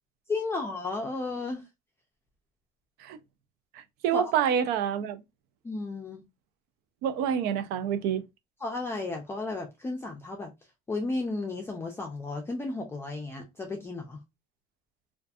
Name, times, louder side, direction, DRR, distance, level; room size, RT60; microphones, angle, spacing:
voice 1, 0.3-1.6 4.1-4.3 5.6-6.2 8.6-10.5 10.9-14.2, left 3 dB, 15° left, 0.5 m, -33 dB
voice 2, 3.7-5.2 7.0-8.3, right 8 dB, 75° right, 0.4 m, -27 dB
2.5 x 2.5 x 2.3 m
cardioid pair, 120°, 17 cm